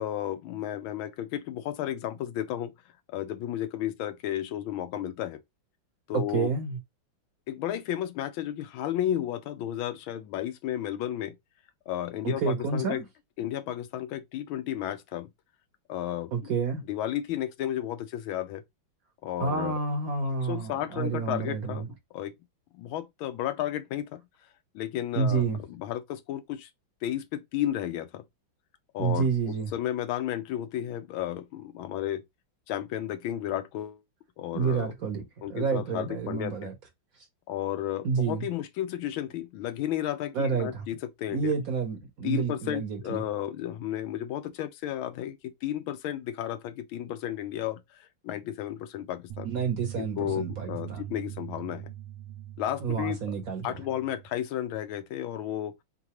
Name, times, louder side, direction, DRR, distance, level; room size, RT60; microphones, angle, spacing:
voice 1, 0.0-2.7 3.1-5.4 6.1-6.5 7.5-11.3 11.9-13.0 13.4-15.3 15.9-16.5 16.9-18.6 19.2-19.7 20.4-22.3 22.7-24.2 24.7-26.7 27.0-28.2 28.9-32.2 32.7-34.0 34.4-34.9 35.4-36.7 37.5-41.5 42.2-49.5 50.0-51.9 52.6-53.3 53.6-55.7, left 11 dB, 90° left, 1.5 m, -33 dB
voice 2, 6.1-6.8 12.2-13.0 16.3-16.8 19.4-21.9 25.2-25.6 29.0-29.7 34.5-35.2 35.5-36.7 38.0-38.5 40.3-40.8 41.3-43.2 49.4-51.0 52.8-53.7, right 5 dB, 60° right, 1.0 m, -29 dB
sound 1, 49.3-54.3, right 12 dB, 85° right, 1.4 m, -42 dB
3.8 x 3.8 x 2.9 m
omnidirectional pair, 2.2 m